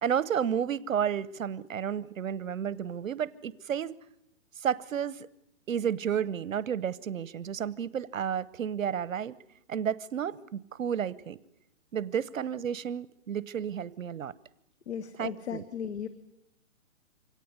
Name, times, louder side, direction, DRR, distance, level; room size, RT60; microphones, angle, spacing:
voice 1, 0.0-4.0 4.6-5.3 5.7-9.4 9.7-11.4 11.9-14.3 15.2-15.6, right 8 dB, 80° right, 19 dB, 1.0 m, -31 dB
voice 2, 14.9-16.1, left 8 dB, 55° left, 11 dB, 1.4 m, -36 dB
25.0 x 18.0 x 9.8 m, 0.80 s
hypercardioid pair, 165°, 39 cm